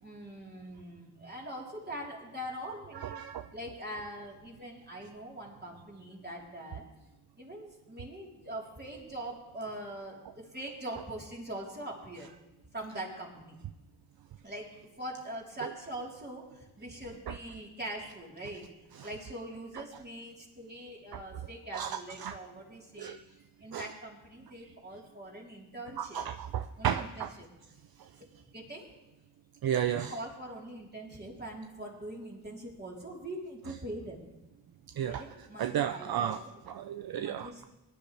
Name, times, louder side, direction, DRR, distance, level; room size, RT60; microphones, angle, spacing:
voice 1, 0.0-3.2 3.5-6.8 7.4-12.3 12.7-13.6 14.4-18.7 19.0-23.2 23.6-26.2 26.8-27.5 28.2-28.3 28.5-28.9 29.9-34.2 35.0-36.5 37.1-37.7, right 1 dB, 25° right, -3 dB, 3.7 m, -42 dB
voice 2, 3.0-3.5 15.6-15.7 17.3-17.4 19.0-19.1 21.7-22.4 23.0-23.2 23.7-23.9 26.0-27.3 29.6-30.1 35.0-35.2 35.6-36.4 36.7-37.6, right 9 dB, 60° right, 10 dB, 0.6 m, -33 dB
19.0 x 10.5 x 3.3 m, 1.0 s
cardioid pair, 65°, 40 cm